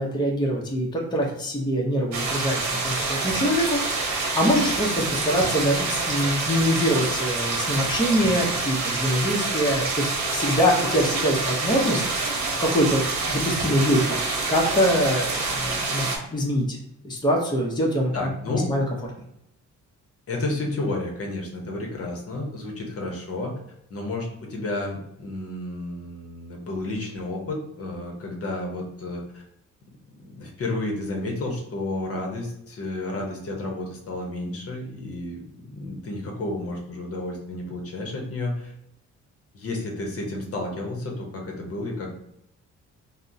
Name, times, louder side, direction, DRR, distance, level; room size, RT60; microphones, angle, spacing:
voice 1, 0.0-3.8 4.3-10.0 10.3-12.0 12.6-14.2 14.5-16.8 17.0-18.3 18.7-18.8, equal, 15° left, -1 dB, 0.7 m, -24 dB
sound 1, 2.1-16.2, right 3 dB, 65° right, 0.8 m, -27 dB
voice 2, 18.1-18.7 20.3-23.5 23.9-29.4 30.2-35.4 35.7-38.7 39.5-42.1, left 2 dB, 50° left, 0 dB, 0.8 m, -31 dB
3.5 x 2.1 x 2.6 m, 0.76 s
cardioid pair, 90°, 30 cm